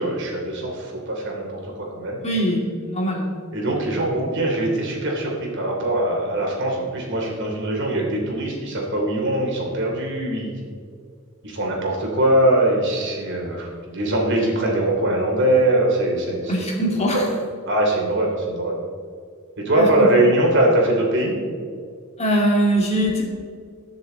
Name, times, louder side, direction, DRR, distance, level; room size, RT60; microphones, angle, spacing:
voice 1, 0.0-2.2 3.5-10.5 11.4-16.6 17.1-17.2 17.7-18.8 19.6-21.4, right 1 dB, 55° right, -1 dB, 3.1 m, -22 dB
voice 2, 2.2-2.6 2.9-3.3 16.5-17.3 19.8-19.9 22.2-23.2, equal, 30° left, -1 dB, 2.4 m, -21 dB
21.0 x 7.1 x 3.9 m, 2.2 s
head